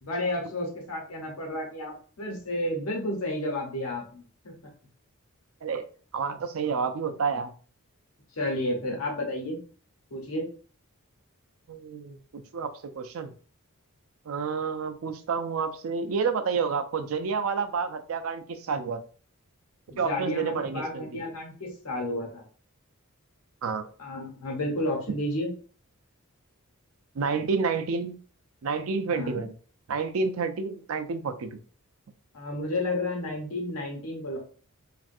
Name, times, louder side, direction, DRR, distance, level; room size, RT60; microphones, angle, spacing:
voice 1, 0.0-4.5 8.3-9.6 10.1-10.5 19.9-22.4 24.0-25.5 29.1-29.4 32.3-34.4, left 1 dB, 80° left, 0 dB, 1.0 m, -31 dB
voice 2, 6.1-7.5 11.7-12.7 12.9-13.3 14.3-19.0 20.0-21.2 23.6-23.9 27.2-28.1 28.6-29.5 29.9-31.5, right 5 dB, 70° right, 8 dB, 0.4 m, -29 dB
3.2 x 2.5 x 2.6 m, 0.40 s
head